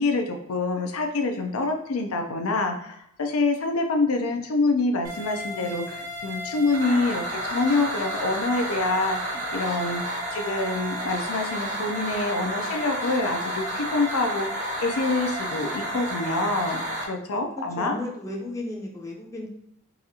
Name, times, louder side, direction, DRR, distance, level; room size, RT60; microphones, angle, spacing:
voice 1, 0.0-18.0, left 3 dB, 90° left, 4 dB, 0.5 m, -26 dB
sound 1, 5.0-17.0, equal, 35° right, 0.8 m, -31 dB
voice 2, 17.3-19.5, left 1 dB, 15° left, -2 dB, 0.5 m, -35 dB
4.0 x 2.4 x 2.7 m, 0.75 s
head